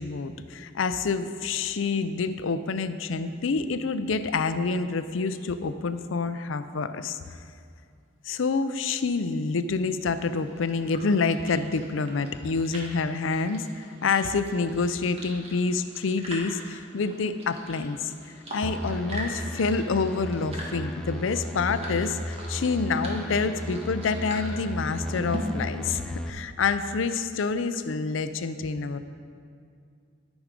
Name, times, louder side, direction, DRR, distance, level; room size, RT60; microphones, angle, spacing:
voice 1, 0.0-7.2 8.3-18.1 18.5-29.0, left 4 dB, 90° left, 11 dB, 0.5 m, -27 dB
sound 1, 10.1-25.4, right 1 dB, 30° right, 1.7 m, -43 dB
sound 2, 18.6-26.3, equal, 5° left, 0.4 m, -35 dB
12.5 x 6.2 x 5.2 m, 2.3 s
head